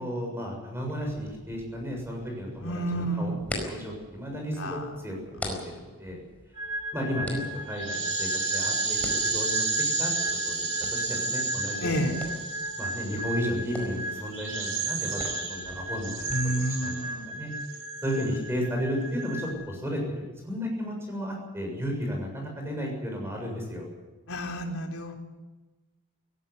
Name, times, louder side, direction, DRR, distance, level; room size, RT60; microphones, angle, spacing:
voice 1, 0.0-3.3 3.6-6.2 6.9-7.4 7.7-9.0 9.3-9.7 10.0-10.1 10.5-10.7 10.9-12.1 12.8-17.5 18.0-23.9, equal, 10° right, 1 dB, 7.1 m, -33 dB
sound 1, 0.8-16.3, left 1 dB, 5° left, 4.6 m, -44 dB
voice 2, 2.6-3.4 4.6-4.9 11.8-12.1 16.3-17.2 24.3-25.2, right 1 dB, 70° left, 2 dB, 3.9 m, -30 dB
sound 2, 6.5-19.5, right 3 dB, 60° right, 5.6 m, -31 dB
18.0 x 16.5 x 9.9 m, 1.2 s
head